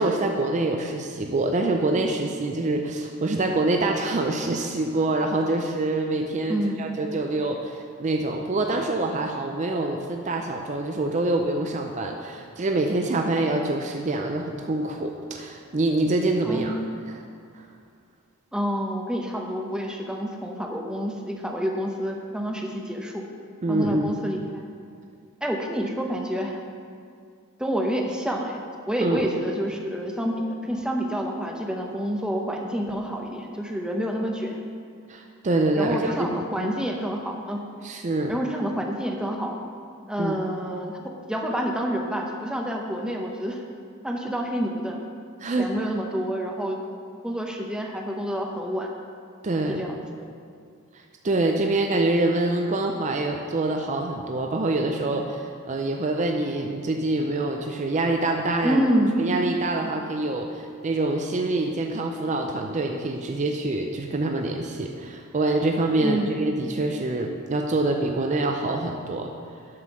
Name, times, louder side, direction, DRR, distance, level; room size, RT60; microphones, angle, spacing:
voice 1, 0.0-16.8 17.1-17.2 17.6-17.7 23.6-24.1 29.0-29.2 35.1-36.7 37.8-38.3 40.2-40.4 45.4-45.7 49.4-49.9 50.9-58.8 59.2-69.3, right 2 dB, 35° right, 3 dB, 0.5 m, -25 dB
voice 2, 6.5-6.8 16.4-16.8 18.5-23.3 23.7-24.7 25.4-26.6 27.6-34.6 35.8-37.6 38.3-39.5 40.1-41.0 41.3-43.6 44.0-45.0 45.6-46.8 47.2-48.9 49.7-50.3 58.6-59.1 66.0-66.3, equal, 5° right, 1 dB, 0.7 m, -28 dB
7.6 x 5.6 x 6.1 m, 2.3 s
head